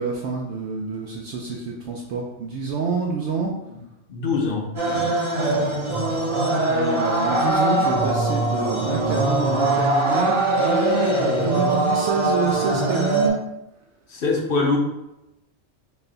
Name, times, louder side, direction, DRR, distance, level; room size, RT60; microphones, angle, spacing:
voice 1, 0.0-3.5 5.4-5.9 6.7-13.4, right 4 dB, 70° right, -1 dB, 0.8 m, -27 dB
voice 2, 4.1-5.1 14.1-14.8, left 4 dB, 55° left, 0 dB, 0.8 m, -24 dB
sound 1, 4.8-13.3, right 2 dB, 30° right, 0.6 m, -22 dB
4.0 x 2.2 x 3.8 m, 0.91 s
omnidirectional pair, 1.3 m